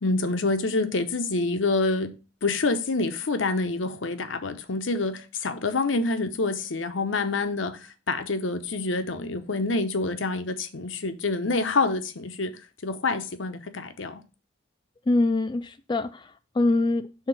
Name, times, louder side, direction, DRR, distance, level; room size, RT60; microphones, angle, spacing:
voice 1, 0.0-2.1 2.4-7.8 8.1-12.5 12.8-14.2, left 3 dB, 80° left, 0.8 m, -27 dB
voice 2, 15.1-17.3, left 2 dB, 25° left, 0.3 m, -24 dB
5.8 x 3.6 x 5.8 m
head